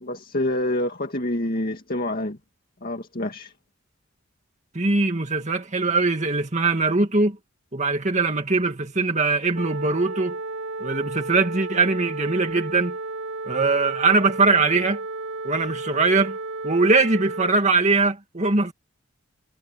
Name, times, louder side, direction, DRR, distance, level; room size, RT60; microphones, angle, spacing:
voice 1, 0.0-2.4 2.8-3.5, left 1 dB, 45° left, 2.1 m, -27 dB
voice 2, 4.7-7.4 7.7-10.4 10.8-13.0 13.5-15.0 15.4-16.4 16.6-18.7, right 3 dB, 35° right, 2.0 m, -21 dB
sound 1, 9.6-17.5, right 3 dB, 60° right, 6.6 m, -33 dB
head